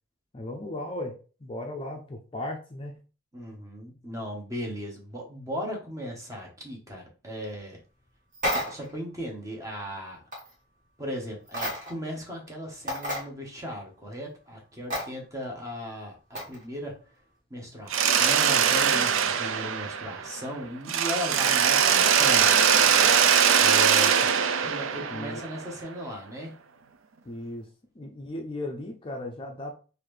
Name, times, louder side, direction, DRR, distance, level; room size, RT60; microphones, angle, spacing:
voice 1, 0.3-2.9 24.9-25.4 27.2-27.7 28.0-29.7, left 1 dB, 25° left, 2 dB, 0.5 m, -36 dB
voice 2, 3.3-7.8 8.5-10.2 11.0-17.0 17.5-22.7 23.6-24.2 24.6-26.5, equal, 15° right, 0 dB, 1.1 m, -36 dB
sound 1, 8.3-9.0 10.3-10.5 11.5-12.1 12.5-12.6 12.9-13.3 14.9-15.1 16.3-16.6, equal, 40° right, 1.7 m, -31 dB
Mechanisms, 17.9-20.5 20.9-25.7, right 7 dB, 80° right, 0.4 m, -22 dB
4.0 x 2.6 x 3.2 m, 0.36 s
head